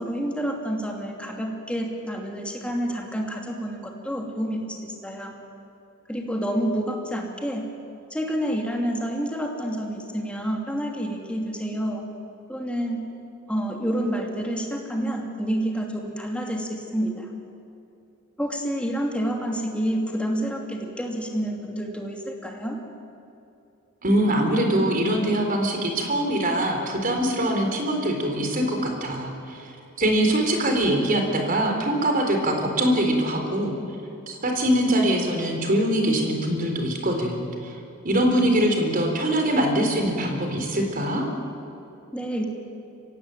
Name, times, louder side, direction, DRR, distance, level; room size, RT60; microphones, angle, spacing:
voice 1, 0.0-5.3 6.1-7.6 8.1-12.0 12.5-13.0 13.5-17.3 18.4-22.8 42.1-42.4, equal, 5° left, 1 dB, 2.7 m, -28 dB
voice 2, 24.0-29.7 30.0-33.8 34.3-37.8 38.0-41.3, right 1 dB, 45° right, 3 dB, 4.0 m, -23 dB
24.0 x 17.0 x 9.2 m, 2.7 s
head